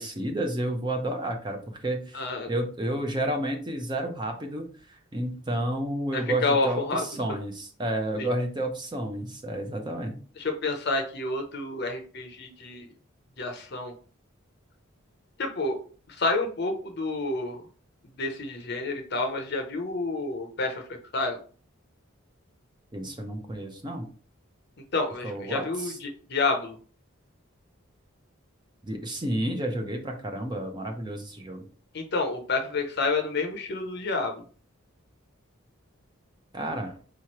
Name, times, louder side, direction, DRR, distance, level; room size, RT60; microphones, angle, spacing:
voice 1, 0.0-2.2 2.5-10.2 22.9-24.1 25.2-26.0 28.8-31.6 36.5-36.9, right 1 dB, 20° right, 4 dB, 0.6 m, -31 dB
voice 2, 2.1-2.5 6.1-7.0 8.2-8.3 10.4-12.9 13.4-13.9 15.4-15.8 16.1-17.6 18.2-20.8 21.1-21.4 24.9-26.8 31.9-34.4, left 3 dB, 50° left, 4 dB, 0.6 m, -29 dB
4.8 x 3.0 x 3.0 m, 0.40 s
head